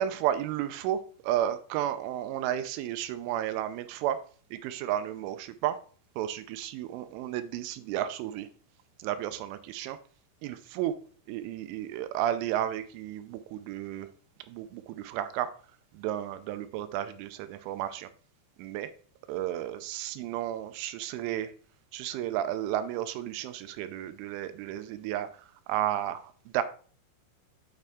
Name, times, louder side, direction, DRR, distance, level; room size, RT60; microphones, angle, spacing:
voice 1, 0.0-4.2 4.5-5.8 6.2-8.5 9.0-10.0 10.4-10.9 11.3-14.1 14.5-15.5 15.9-18.1 18.6-18.9 19.3-21.5 21.9-26.6, right 12 dB, 85° right, 11 dB, 3.1 m, -32 dB
9.0 x 6.5 x 3.5 m, 0.43 s
omnidirectional pair, 5.6 m